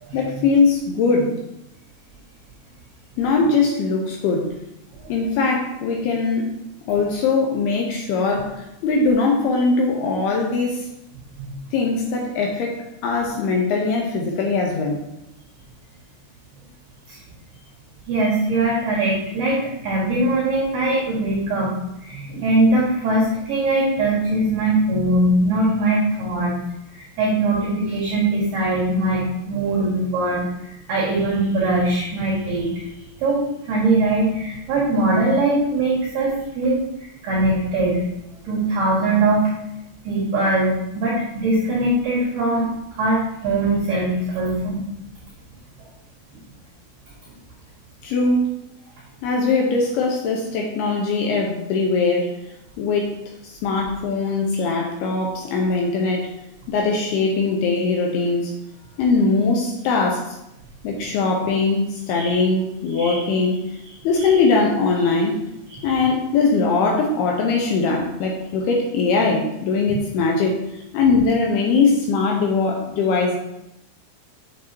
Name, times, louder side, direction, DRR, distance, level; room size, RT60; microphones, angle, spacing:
voice 1, 0.1-1.4 3.2-4.5 5.1-6.5 6.9-10.9 11.7-12.8 13.0-15.0 48.0-48.5 49.2-52.3 52.8-53.1 53.4-56.3 56.7-58.5 59.0-60.4 60.8-63.8 64.0-65.4 65.8-70.6 70.9-73.4, left 4 dB, 80° left, 0 dB, 2.3 m, -21 dB
voice 2, 18.1-26.5 26.9-32.9 33.2-38.0 38.5-39.5 40.0-44.9 45.8-45.9 62.1-62.3 62.9-63.2 64.2-64.3 65.7-66.0 69.9-70.0, right 2 dB, 60° right, -7 dB, 3.5 m, -21 dB
8.5 x 7.5 x 2.8 m, 0.85 s
omnidirectional pair, 5.7 m